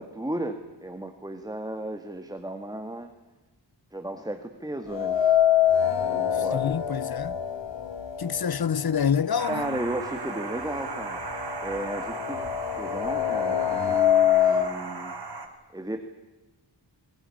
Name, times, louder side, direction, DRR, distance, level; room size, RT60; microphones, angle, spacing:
voice 1, 0.0-3.1 3.9-5.2 6.0-6.8 9.5-11.2 11.6-15.1 15.7-16.0, right 1 dB, 10° right, 1.9 m, -34 dB
sound 1, 4.9-9.0 9.3-9.4 10.4-10.5 10.9-14.7, left 10 dB, 70° left, 1.9 m, -25 dB
voice 2, 6.3-7.4 8.2-9.8, left 7 dB, 55° left, 0.8 m, -27 dB
sound 2, 9.4-15.5, right 4 dB, 60° right, 3.9 m, -37 dB
23.0 x 21.0 x 9.9 m
wide cardioid pair, 105°, 45 cm